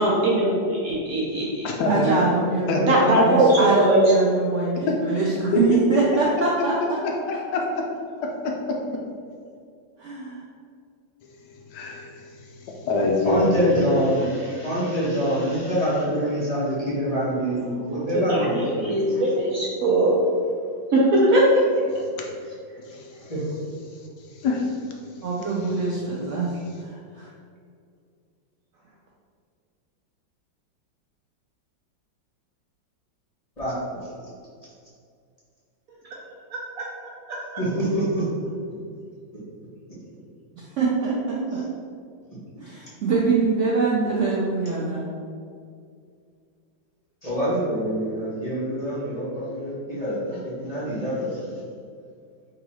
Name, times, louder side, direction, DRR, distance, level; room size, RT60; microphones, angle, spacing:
voice 1, 0.0-1.7 2.0-2.2 2.8-4.0 18.1-20.2 20.9-21.6 36.5-36.8 37.3-37.4, right 1 dB, 65° right, -4 dB, 0.9 m, -20 dB
voice 2, 1.8-6.7 10.0-10.4 25.2-26.5 26.8-27.3 40.6-41.7 42.6-45.1, right 4 dB, 85° right, -5 dB, 0.6 m, -24 dB
voice 3, 5.5-6.0 7.0-7.1 8.2-8.8 11.7-12.3 12.6-13.8 22.8-23.1 24.3-24.8, left 3 dB, 75° left, 0 dB, 1.1 m, -25 dB
voice 4, 13.2-19.6 23.1-23.4 33.6-34.2 37.6-38.2 47.2-51.5, equal, 25° left, -9 dB, 1.0 m, -25 dB
3.8 x 3.0 x 4.1 m, 2.2 s
omnidirectional pair, 2.0 m